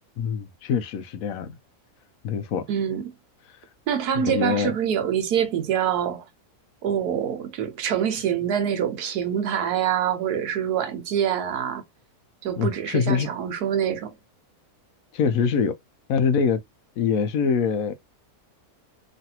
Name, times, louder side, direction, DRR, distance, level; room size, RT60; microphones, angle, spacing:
voice 1, 0.2-1.5 2.2-2.7 4.2-4.7 12.6-13.3 15.1-15.7 16.1-16.6 17.0-17.9, left 6 dB, 70° left, 0.9 m, -24 dB
voice 2, 2.7-3.1 3.9-6.2 6.8-11.8 12.4-14.2, right 9 dB, 85° right, 1.3 m, -25 dB
3.1 x 2.5 x 2.8 m
omnidirectional pair, 1.6 m